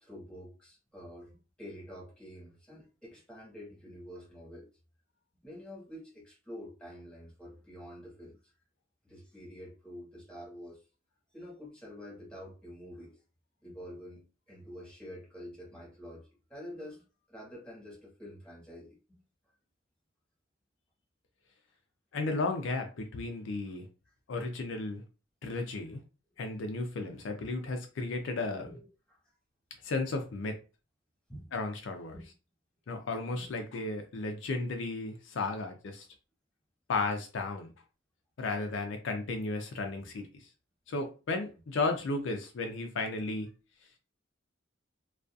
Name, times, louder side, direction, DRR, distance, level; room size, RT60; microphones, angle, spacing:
voice 1, 0.0-4.7 5.4-8.5 9.0-10.8 11.3-13.2 13.6-19.2 28.3-29.2 31.3-31.5 32.1-32.3 33.4-33.5 40.0-40.1, equal, 5° left, 1.2 m, -48 dB
voice 2, 22.1-23.9 24.3-25.0 25.4-26.0 26.4-28.7 29.8-30.6 31.5-32.1 32.9-36.1 36.9-37.7 38.4-40.5 40.9-43.5, left 3 dB, 65° left, 0.4 m, -34 dB
2.5 x 2.3 x 2.3 m
head